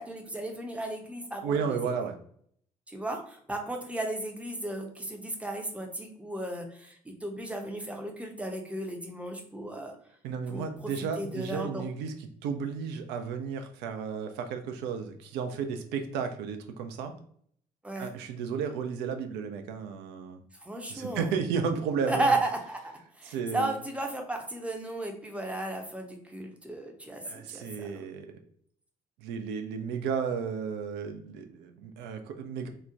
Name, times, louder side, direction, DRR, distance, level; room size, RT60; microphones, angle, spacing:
voice 1, 0.0-1.8 2.9-9.9 10.5-10.9 11.2-11.9 17.8-18.1 20.6-21.3 22.1-28.0, right 2 dB, 5° right, 2 dB, 0.6 m, -34 dB
voice 2, 1.4-2.2 10.2-12.1 12.4-17.1 18.0-20.4 20.9-22.3 23.3-23.7 27.2-28.3 29.2-32.7, right 6 dB, 60° right, 7 dB, 0.4 m, -33 dB
2.9 x 2.1 x 2.4 m, 0.64 s
figure-of-eight pair, 45°, 20 cm